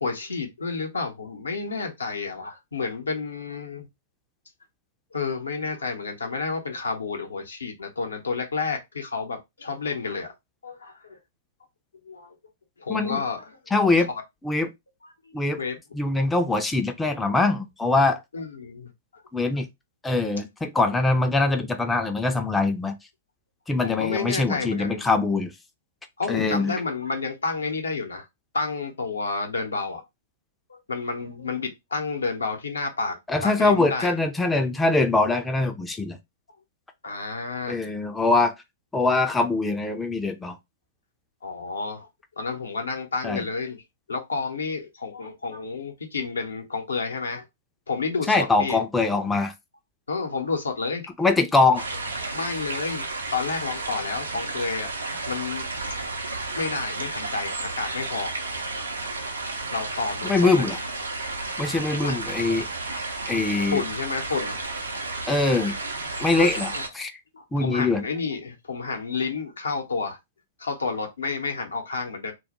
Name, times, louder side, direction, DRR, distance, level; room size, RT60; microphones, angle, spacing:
voice 1, 0.0-3.9 5.1-10.3 10.6-11.2 12.0-12.3 12.8-13.6 14.0-14.2 15.0-16.0 18.3-18.9 23.8-25.1 26.2-28.3 28.5-30.0 30.7-34.1 37.0-37.8 41.4-42.1 42.4-43.8 44.1-47.5 47.9-48.8 50.1-51.1 52.3-53.1 53.3-54.9 55.3-55.9 56.6-58.3 59.7-60.7 62.0-62.2 63.7-64.8 66.4-66.8 67.3-70.2 70.6-72.3, left 4 dB, 85° left, 0.6 m, -30 dB
voice 2, 12.9-13.2 13.7-14.1 14.4-14.7 15.3-15.6 15.9-18.2 19.3-19.7 20.0-22.9 23.7-25.5 26.3-26.7 33.3-36.2 37.7-38.5 38.9-40.6 43.2-43.4 48.3-49.5 51.2-51.8 60.2-60.8 61.6-62.7 63.3-63.8 65.3-65.7 66.2-67.1 67.5-68.0, left 3 dB, 10° left, 0.3 m, -23 dB
sound 1, 51.8-66.9, right 3 dB, 85° right, 0.5 m, -32 dB
2.2 x 2.0 x 2.9 m
hypercardioid pair, 115°, 0 cm